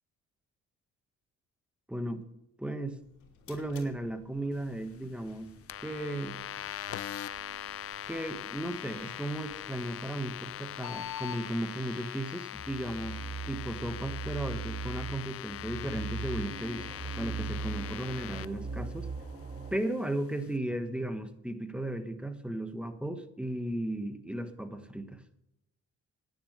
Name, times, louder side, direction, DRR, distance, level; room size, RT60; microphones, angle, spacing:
voice 1, 1.9-2.2 2.6-3.0 3.5-5.5 5.8-6.5 8.1-13.2 13.5-16.9 17.1-19.1 19.7-25.2, right 1 dB, 5° right, 8 dB, 1.4 m, -35 dB
sound 1, 3.0-11.4, left 9 dB, 75° left, 3.4 m, -50 dB
sound 2, 5.7-18.5, left 12 dB, 50° left, 0.5 m, -41 dB
sound 3, 12.5-19.8, right 4 dB, 30° right, 2.8 m, -39 dB
10.5 x 9.7 x 6.7 m, 0.85 s
cardioid pair, 90°, 30 cm